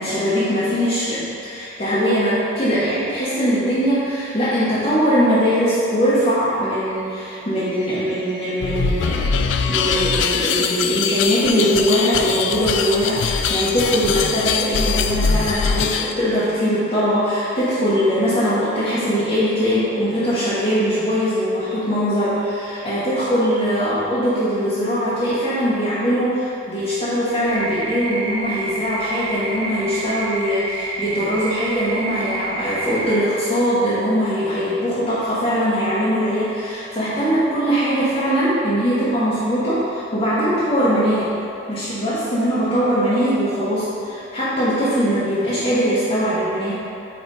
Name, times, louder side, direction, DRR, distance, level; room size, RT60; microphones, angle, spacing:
voice 1, 0.0-41.4 41.7-46.7, equal, 35° left, -12 dB, 1.1 m, -21 dB
sound 1, 8.6-16.1, left 6 dB, 90° left, 0.3 m, -22 dB
sound 2, 27.5-33.2, right 3 dB, 30° right, 0.6 m, -29 dB
5.4 x 4.3 x 4.1 m, 2.8 s
head